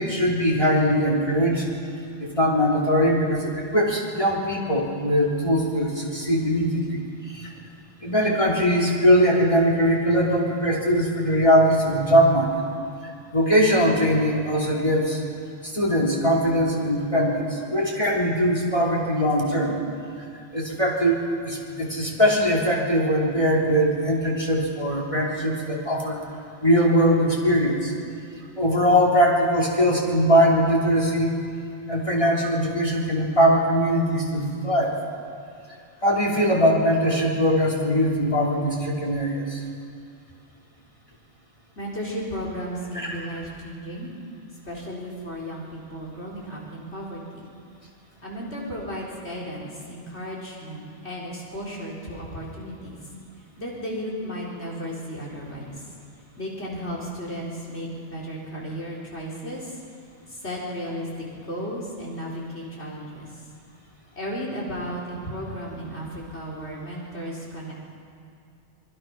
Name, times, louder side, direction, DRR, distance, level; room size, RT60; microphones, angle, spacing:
voice 1, 0.0-1.7 2.2-7.5 8.0-12.5 13.3-15.2 15.6-19.8 20.5-26.2 26.6-27.9 28.6-31.4 31.9-35.0 36.0-39.6 43.0-43.1, equal, 25° left, -3 dB, 3.3 m, -21 dB
voice 2, 41.8-44.1 44.7-47.4 48.2-53.0 53.6-55.9 56.4-59.8 60.3-61.1 61.4-63.4 64.2-67.7, equal, 65° left, -4 dB, 4.3 m, -34 dB
26.5 x 22.0 x 5.9 m, 2.5 s
omnidirectional pair, 1.2 m